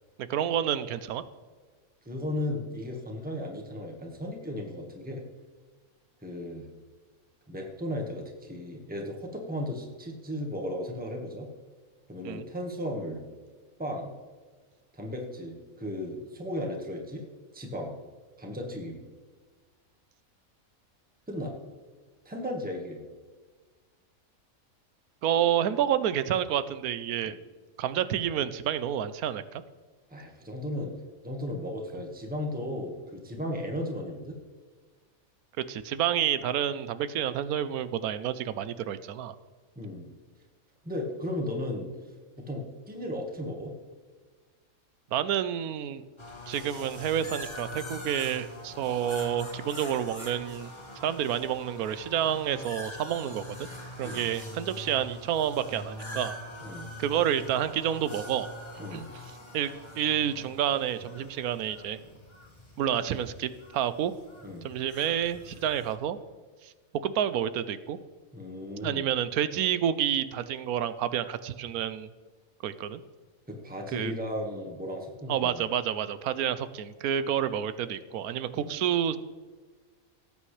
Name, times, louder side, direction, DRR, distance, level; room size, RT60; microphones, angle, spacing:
voice 1, 0.2-1.2 12.2-12.4 25.2-27.4 27.8-29.6 35.7-39.3 45.1-46.0 46.5-50.7 51.0-53.7 54.0-56.4 57.0-58.5 58.9-59.0 59.5-62.0 62.8-64.1 64.6-66.2 66.6-66.7 67.0-68.0 68.8-72.1 72.6-73.0 73.9-74.1 75.3-79.2, right 10 dB, 85° right, 13 dB, 1.1 m, -29 dB
voice 2, 2.0-5.2 6.2-6.6 7.5-11.5 12.1-13.2 13.8-14.1 14.9-17.2 17.5-18.0 18.4-19.0 21.3-21.5 22.2-23.0 27.3-27.4 30.1-31.0 31.2-34.3 39.7-40.1 40.8-41.9 42.4-43.7 54.0-54.3 56.6-56.9 58.8-59.1 64.4-64.7 68.3-69.1 73.5-75.6 78.5-78.7, left 1 dB, 5° right, 1 dB, 1.4 m, -35 dB
sound 1, 46.2-65.9, left 1 dB, 20° left, 1.8 m, -44 dB
18.5 x 8.4 x 3.3 m, 1.5 s
omnidirectional pair, 1.5 m